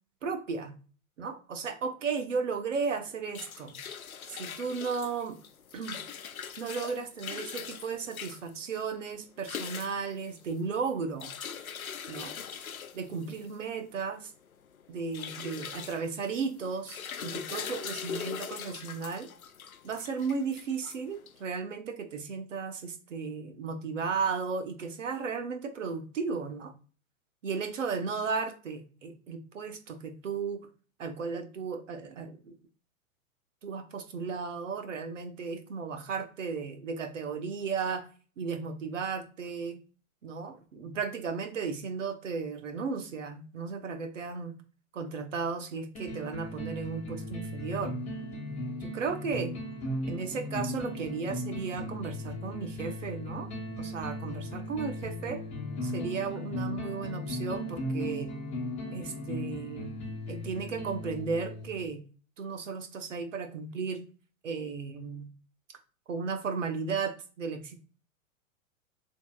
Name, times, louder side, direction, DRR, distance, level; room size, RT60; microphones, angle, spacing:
voice 1, 0.2-0.7 1.2-3.7 4.3-5.4 5.7-6.0 6.6-11.3 12.1-12.3 12.9-14.3 14.9-19.3 19.8-26.7 27.4-30.7 31.0-32.6 33.6-38.1 38.4-39.8 40.2-44.6 44.9-47.9 48.8-49.6 50.1-53.5 53.8-55.4 55.8-58.3 58.9-59.9 60.3-62.0 62.4-64.0 64.4-65.3 66.1-67.8, right 5 dB, 60° right, 7 dB, 1.0 m, -35 dB
sound 1, 3.1-21.6, left 7 dB, 80° left, 0.6 m, -42 dB
sound 2, 45.9-61.9, left 1 dB, 15° left, 1.3 m, -37 dB
7.0 x 2.8 x 2.3 m, 0.37 s
figure-of-eight pair, 105°, 42 cm